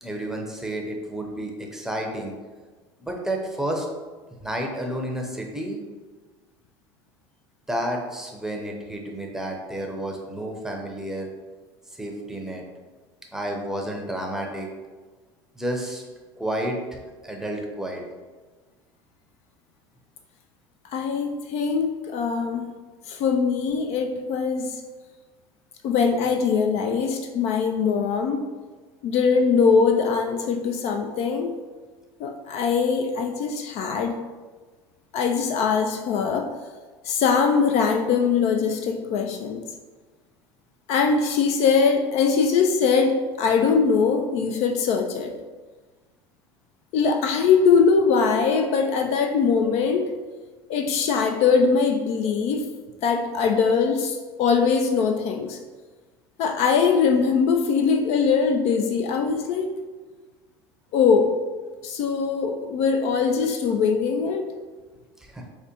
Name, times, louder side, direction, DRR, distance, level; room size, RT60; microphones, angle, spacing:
voice 1, 0.0-2.3 3.0-3.9 4.4-5.8 7.7-11.3 12.0-12.6 13.3-14.7 15.6-16.0 16.4-18.0 65.2-65.4, right 1 dB, 5° right, 0 dB, 0.7 m, -31 dB
voice 2, 20.9-22.7 23.1-24.8 25.8-28.4 29.0-31.6 32.2-34.2 35.1-36.5 37.0-39.6 40.9-45.4 46.9-50.1 50.7-52.7 53.0-55.6 56.4-59.7 60.9-61.4 61.8-64.5, left 5 dB, 55° left, 5 dB, 0.4 m, -22 dB
4.8 x 2.2 x 2.8 m, 1.3 s
hypercardioid pair, 85°, 13 cm